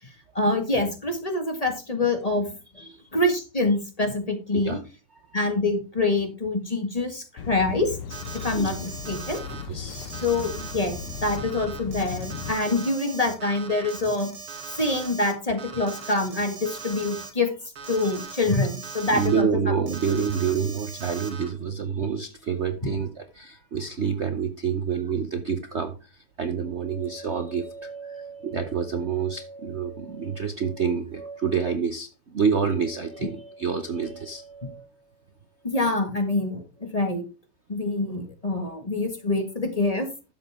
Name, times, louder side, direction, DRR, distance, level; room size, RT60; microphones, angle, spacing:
voice 1, 0.3-2.5 3.1-4.8 5.3-8.0 8.3-9.4 10.2-14.3 14.8-17.5 17.9-19.7 34.6-34.7 35.6-37.2 37.7-40.1, left 2 dB, 20° left, 5 dB, 1.4 m, -25 dB
sound 1, 7.4-12.5, left 7 dB, 80° left, 2.1 m, -37 dB
Alarm, 8.1-9.6 9.9-15.3 15.6-17.3 17.8-19.4 19.9-21.5, right 5 dB, 85° right, 3.0 m, -40 dB
voice 2, 8.3-8.8 9.7-10.3 19.1-34.9, right 6 dB, 65° right, 7 dB, 0.6 m, -28 dB
12.0 x 7.6 x 3.5 m, 0.32 s
omnidirectional pair, 2.4 m